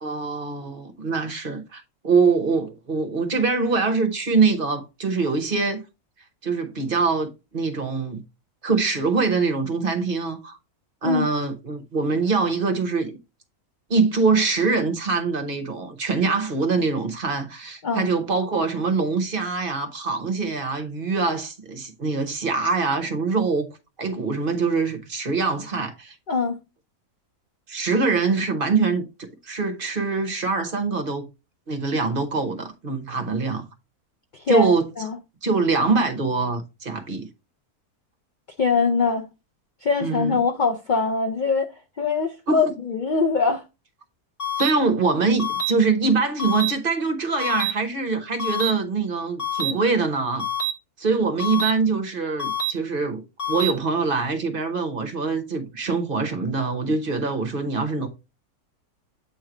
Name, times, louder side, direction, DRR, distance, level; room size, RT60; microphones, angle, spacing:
voice 1, 0.0-5.8 6.4-8.2 8.6-10.6 11.0-13.2 13.9-23.7 24.0-26.1 27.7-31.3 31.7-33.6 34.5-34.9 35.4-37.3 40.0-40.4 42.5-42.6 44.6-50.4 51.0-58.1, right 4 dB, 45° right, 0.9 m, -24 dB
voice 2, 26.3-26.6 34.3-35.2 38.6-39.3 39.8-41.7 42.0-43.6 49.6-49.8, left 4 dB, 90° left, 0.4 m, -23 dB
sound 1, 44.4-44.7 45.4-45.7 46.4-46.7 47.4-47.7 48.4-48.7 49.4-49.7 50.4-50.7 51.4-51.7 52.4-52.7 53.4-53.7, equal, 25° left, 1.6 m, -26 dB
8.2 x 3.1 x 3.7 m
omnidirectional pair, 1.5 m